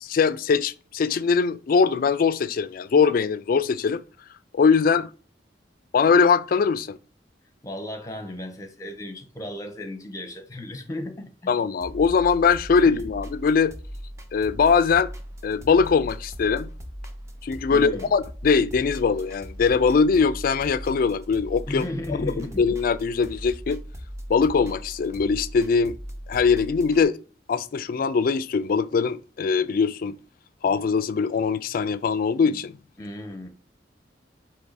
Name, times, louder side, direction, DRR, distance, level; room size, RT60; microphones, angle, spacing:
voice 1, 0.0-4.0 4.5-5.1 5.9-7.0 11.5-13.7 14.3-15.1 15.4-16.7 17.4-21.9 22.6-23.8 24.3-25.9 26.3-27.2 27.5-30.2 30.6-32.8, left 5 dB, 50° left, 0.3 m, -21 dB
voice 2, 7.6-11.5 12.8-13.0 17.7-18.1 21.7-22.6 33.0-33.5, left 1 dB, 20° left, 0.8 m, -35 dB
sound 1, 11.8-27.0, equal, 15° right, 0.5 m, -39 dB
4.6 x 2.8 x 4.0 m
head